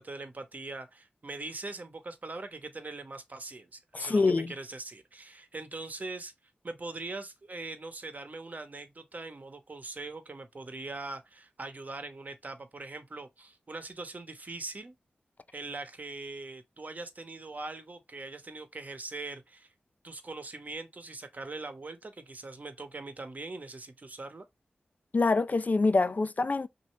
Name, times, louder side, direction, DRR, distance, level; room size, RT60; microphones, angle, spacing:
voice 1, 0.0-6.3 6.6-14.9 15.5-19.7 20.0-24.4, right 3 dB, 50° right, 1.0 m, -41 dB
voice 2, 3.9-4.5 25.1-26.7, left 3 dB, 50° left, 0.4 m, -25 dB
6.2 x 2.7 x 3.1 m
cardioid pair, 50°, 4 cm